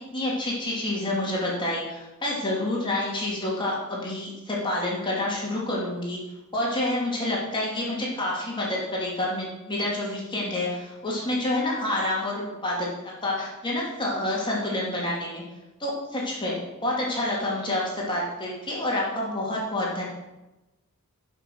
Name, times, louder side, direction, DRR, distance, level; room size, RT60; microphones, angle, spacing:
voice 1, 0.1-6.2 6.5-12.9 13.2-15.4 15.8-16.6 16.8-20.1, left 1 dB, 20° left, -4 dB, 2.6 m, -28 dB
11.5 x 5.8 x 6.4 m, 1.0 s
head